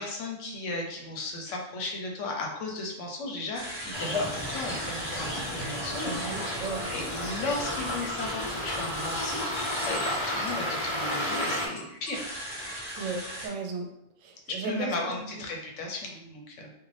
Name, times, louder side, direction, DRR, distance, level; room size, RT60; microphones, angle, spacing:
voice 1, 0.0-6.5 6.9-12.2 14.5-16.7, left 2 dB, 75° left, 1 dB, 1.0 m, -35 dB
sound 1, 3.5-13.5, right 1 dB, 5° right, 1.1 m, -39 dB
sound 2, 3.9-11.7, left 1 dB, 35° left, 0.4 m, -32 dB
voice 2, 6.0-6.8 12.9-13.9 14.2-14.9 15.3-15.4, right 4 dB, 80° right, 2 dB, 0.9 m, -35 dB
2.5 x 2.4 x 3.2 m, 0.81 s
omnidirectional pair, 1.3 m